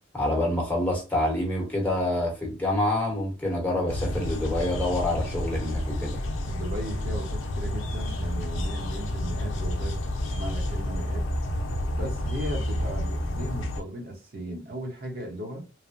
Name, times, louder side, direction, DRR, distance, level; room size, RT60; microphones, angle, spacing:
voice 1, 0.1-6.2, left 1 dB, 10° left, 1.0 m, -27 dB
sound 1, 3.9-13.8, left 1 dB, 90° left, 0.6 m, -30 dB
voice 2, 6.2-11.3 11.9-15.7, right 1 dB, 50° right, 0.9 m, -37 dB
3.2 x 2.1 x 2.5 m
head